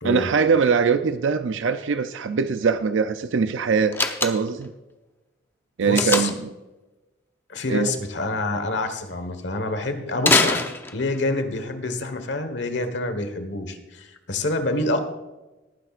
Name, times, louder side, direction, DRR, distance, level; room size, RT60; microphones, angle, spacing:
voice 1, 0.0-3.9 4.2-4.7 5.8-6.5 7.7-7.9, right 5 dB, 80° right, 10 dB, 0.5 m, -22 dB
Slam, 3.9-4.7 6.0-6.5 10.2-11.3, left 3 dB, 10° left, 0.7 m, -23 dB
voice 2, 5.8-6.3 7.5-10.6 10.9-15.0, left 2 dB, 70° left, 8 dB, 1.4 m, -27 dB
19.0 x 10.0 x 2.5 m, 1.1 s
head